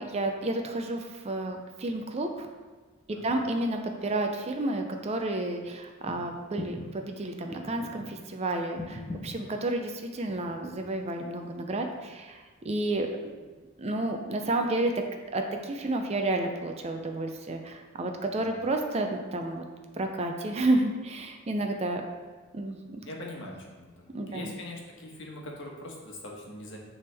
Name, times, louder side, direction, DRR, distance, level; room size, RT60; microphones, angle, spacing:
voice 1, 0.0-2.5 3.2-13.1 13.8-15.0 15.3-19.6 19.9-22.0 22.5-23.1 24.1-24.5, right 2 dB, 30° right, 4 dB, 0.5 m, -31 dB
voice 2, 3.1-3.5 13.0-13.1 18.3-18.7 23.0-26.8, left 1 dB, 60° left, -1 dB, 1.2 m, -42 dB
sound 1, 6.0-6.2 6.6-6.9 7.5-8.1 8.8-9.4 10.3-10.9 11.3-11.9 12.9-13.6 14.5-14.6, left 1 dB, 10° left, 0.9 m, -41 dB
9.5 x 3.5 x 3.4 m, 1.3 s
head